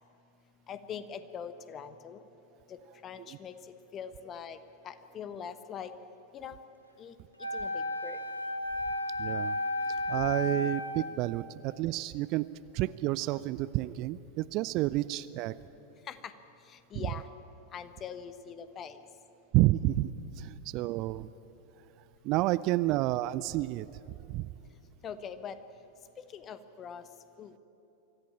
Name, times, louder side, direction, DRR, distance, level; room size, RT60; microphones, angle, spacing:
voice 1, 0.7-2.2 2.7-2.8 3.0-3.5 3.9-4.6 4.8-5.9 6.3-6.6 7.0-7.1 7.5-8.2 16.1-16.3 16.7-17.2 17.7-19.0 25.0-25.6 26.3-27.0 27.4-27.6, left 7 dB, 30° left, 12 dB, 1.1 m, -42 dB
Wind instrument woodwind instrument, 7.4-11.2, left 2 dB, 85° left, 1.6 m, -33 dB
voice 2, 9.2-9.6 10.1-12.4 12.7-15.6 17.0-17.1 19.5-21.3 22.2-23.9 24.3-24.5, right 17 dB, 40° right, 17 dB, 0.4 m, -30 dB
24.5 x 14.5 x 8.9 m, 3.0 s
figure-of-eight pair, 90°, 0 cm